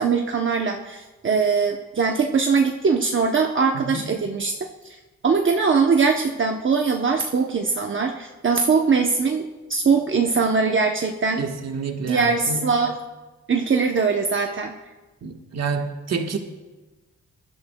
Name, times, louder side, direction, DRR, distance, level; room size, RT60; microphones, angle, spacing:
voice 1, 0.0-4.5 4.8-5.0 5.2-9.4 9.7-11.4 12.1-12.9 13.5-14.7, right 5 dB, 45° right, 2 dB, 0.8 m, -21 dB
voice 2, 3.7-4.2 11.4-12.8 15.2-16.4, right 4 dB, 60° right, 4 dB, 1.4 m, -29 dB
23.0 x 12.0 x 2.3 m, 1.2 s
wide cardioid pair, 110°, 29 cm